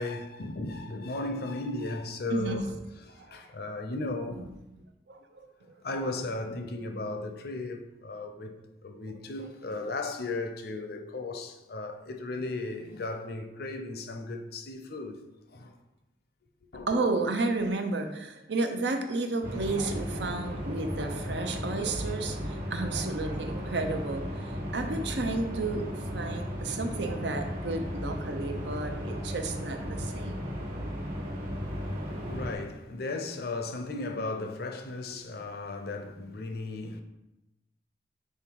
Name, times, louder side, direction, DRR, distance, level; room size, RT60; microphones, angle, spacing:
voice 1, 0.0-2.7 3.0-4.5 5.8-8.6 8.8-15.2 15.5-15.7 16.7-16.9 32.3-37.0, left 2 dB, 55° left, 0.6 m, -36 dB
voice 2, 2.3-2.6 3.2-3.3 5.1-5.2 5.7-5.8 6.0-6.1 9.4-9.5 16.9-24.2 24.7-30.5, right 3 dB, 70° right, 0.7 m, -32 dB
sound 1, 19.4-32.5, equal, 50° right, 1.4 m, -35 dB
5.6 x 3.7 x 4.6 m
head